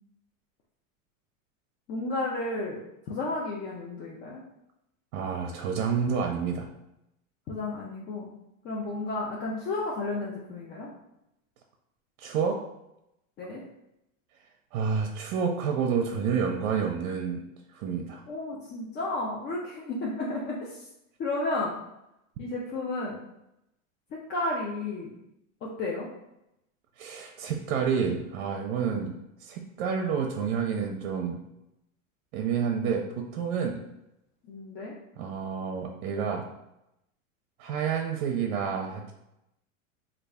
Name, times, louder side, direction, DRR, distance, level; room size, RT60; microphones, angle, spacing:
voice 1, 1.9-2.8 3.1-4.4 7.5-8.3 8.6-10.9 13.4-13.6 18.3-20.9 21.2-21.8 22.4-23.2 24.3-25.1 25.6-26.1 34.4-34.9, left 2 dB, 25° left, -3 dB, 0.4 m, -32 dB
voice 2, 5.1-6.7 12.2-12.6 14.7-17.4 17.7-18.2 27.0-29.1 29.4-31.4 32.3-33.8 35.2-36.4 37.6-39.1, right 6 dB, 65° right, 2 dB, 0.6 m, -29 dB
3.1 x 2.4 x 3.5 m, 0.87 s
supercardioid pair, 125°, 40 cm